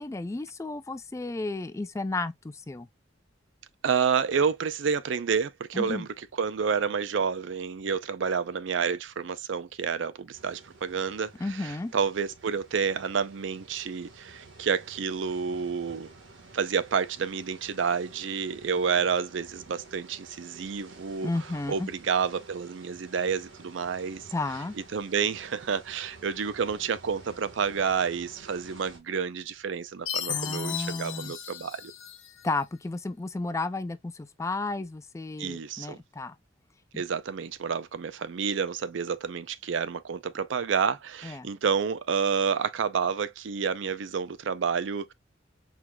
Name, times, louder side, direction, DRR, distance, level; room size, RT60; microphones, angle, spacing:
voice 1, 0.0-2.9 5.7-6.1 11.4-11.9 21.2-21.9 24.3-24.8 30.3-31.3 32.4-36.4 36.9-37.0 41.2-41.5, left 2 dB, 15° left, 0.3 m, -33 dB
voice 2, 3.8-6.1 6.4-16.1 16.5-24.3 24.9-31.9 35.4-36.0 37.0-45.1, right 6 dB, 70° right, 0.5 m, -29 dB
sound 1, 10.3-29.0, right 3 dB, 90° right, 1.4 m, -51 dB
Chime, 30.1-32.5, left 10 dB, 85° left, 1.0 m, -35 dB
4.6 x 3.8 x 2.2 m
head